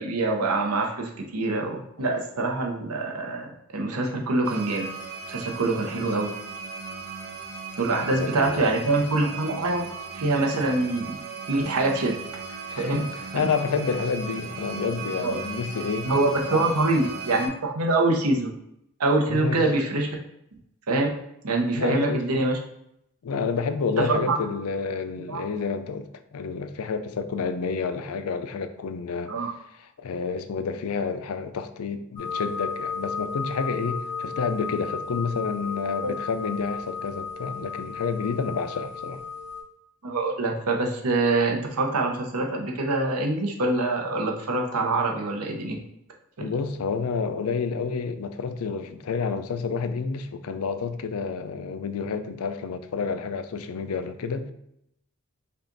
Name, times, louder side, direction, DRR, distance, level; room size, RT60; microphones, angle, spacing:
voice 1, 0.0-4.9 5.3-6.3 7.8-9.8 10.1-11.2 11.5-12.2 12.8-13.0 13.3-13.5 15.2-15.4 16.0-18.5 19.0-20.1 20.9-21.1 21.4-22.6 24.0-24.4 25.3-25.4 29.3-29.5 36.0-36.1 40.0-45.7 46.4-46.5, right 2 dB, 85° right, 1 dB, 0.9 m, -25 dB
sound 1, 4.4-17.5, right 5 dB, 55° right, 1.0 m, -37 dB
voice 2, 8.0-8.8 12.7-16.1 16.5-16.8 19.3-19.6 21.7-22.5 23.2-29.3 30.0-39.2 46.4-54.5, left 5 dB, 70° left, 10 dB, 0.4 m, -29 dB
sound 2, 32.2-39.6, left 5 dB, 40° left, 1.6 m, -34 dB
5.4 x 2.4 x 3.9 m, 0.78 s
head